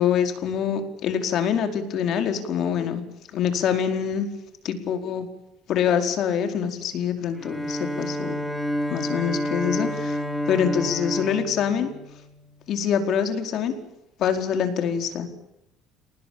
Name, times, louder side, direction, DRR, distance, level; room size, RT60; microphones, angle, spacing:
voice 1, 0.0-3.0 3.3-4.3 4.6-5.3 5.7-8.4 8.9-11.9 12.7-13.8 14.2-15.3, left 8 dB, 55° left, 6 dB, 4.7 m, -25 dB
Bowed string instrument, 7.4-12.6, equal, ahead, 2.9 m, -29 dB
27.5 x 20.0 x 8.8 m, 0.85 s
cardioid pair, 135°, 0 cm